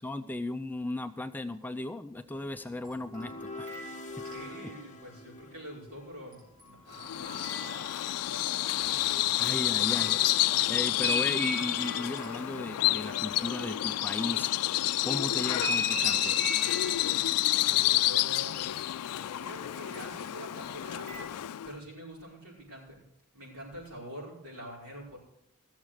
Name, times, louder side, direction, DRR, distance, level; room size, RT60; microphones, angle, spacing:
voice 1, 0.0-3.8 9.3-10.2 10.7-14.5 15.0-16.4, left 2 dB, 10° left, 9 dB, 0.4 m, -36 dB
sound 1, 2.6-5.1 6.3-8.4 8.8-14.7 15.4-19.5 19.9-21.2, equal, 40° right, 4.6 m, -40 dB
sound 2, 3.1-6.3, left 3 dB, 35° left, 0.8 m, -45 dB
voice 2, 4.2-9.2 17.5-18.6 19.4-21.3 21.6-23.1 23.3-25.2, equal, 70° right, -3 dB, 5.4 m, -46 dB
Bird vocalization bird call bird song, 6.9-21.7, left 15 dB, 90° left, 0.4 m, -29 dB
15.5 x 7.2 x 6.4 m, 0.78 s
head